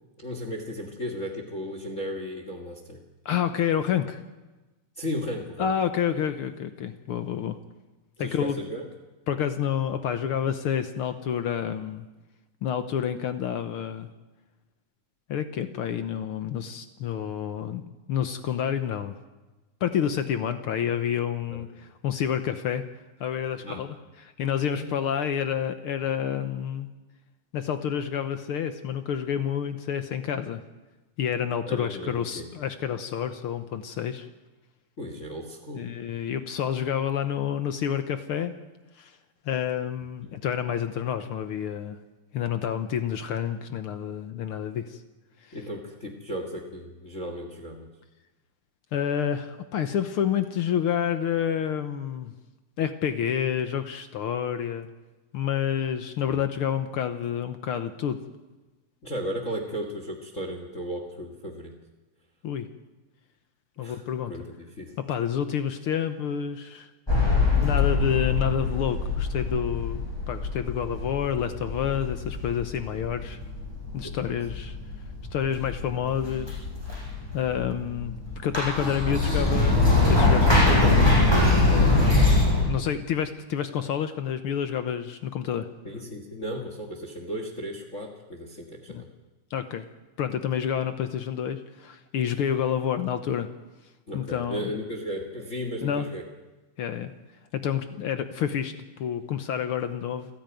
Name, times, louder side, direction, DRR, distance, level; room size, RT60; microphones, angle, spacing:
voice 1, 0.2-3.0 5.0-5.7 8.2-8.8 21.5-21.6 23.6-23.9 24.7-24.9 31.6-32.5 35.0-35.9 40.3-40.4 45.5-47.9 56.3-56.5 59.0-61.7 63.8-64.9 74.0-74.4 85.8-89.1 94.1-96.2, equal, 30° left, 4 dB, 1.6 m, -35 dB
voice 2, 3.2-4.2 5.6-7.6 8.2-8.6 9.3-12.1 12.6-14.1 15.3-17.8 18.1-19.1 19.8-22.8 23.2-23.9 24.2-26.9 27.5-30.6 31.2-34.3 35.7-38.5 39.0-39.1 39.4-42.0 42.3-45.0 48.9-52.3 52.8-54.9 55.3-58.2 62.4-62.7 63.8-64.3 65.1-66.9 67.6-73.4 73.9-74.8 75.3-76.7 77.3-78.1 78.4-81.4 81.7-82.2 82.6-85.7 88.9-89.0 89.5-89.9 90.2-93.5 94.1-94.7 95.8-96.1 96.8-97.1 97.5-100.3, left 9 dB, 70° left, 9 dB, 1.3 m, -29 dB
sound 1, 67.1-82.7, left 2 dB, 5° left, 6.7 m, -23 dB
29.0 x 10.5 x 9.1 m, 1.2 s
omnidirectional pair, 3.5 m